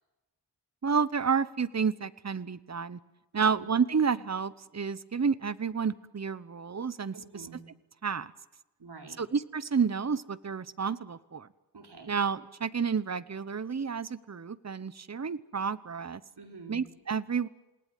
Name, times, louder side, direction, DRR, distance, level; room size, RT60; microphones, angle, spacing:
voice 1, 0.8-3.0 3.3-7.5 8.0-8.3 9.2-11.5 12.1-16.2 16.7-17.5, right 6 dB, 40° right, 17 dB, 0.9 m, -30 dB
voice 2, 3.3-3.7 7.1-7.6 8.8-9.2 11.7-12.1 16.4-16.8, right 4 dB, 70° right, 3 dB, 4.2 m, -46 dB
28.5 x 18.5 x 9.2 m, 1.1 s
wide cardioid pair, 80°, 41 cm